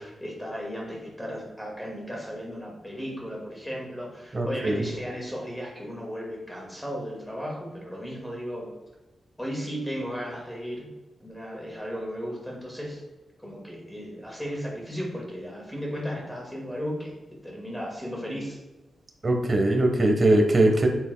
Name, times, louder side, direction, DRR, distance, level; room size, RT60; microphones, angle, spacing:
voice 1, 0.0-8.7 9.4-10.9 11.2-13.0 13.4-18.6, equal, 5° left, -2 dB, 2.0 m, -35 dB
voice 2, 4.3-4.8 19.2-20.9, right 1 dB, 30° right, 3 dB, 1.2 m, -21 dB
8.7 x 8.1 x 2.3 m, 1.1 s
wide cardioid pair, 165°, 0 cm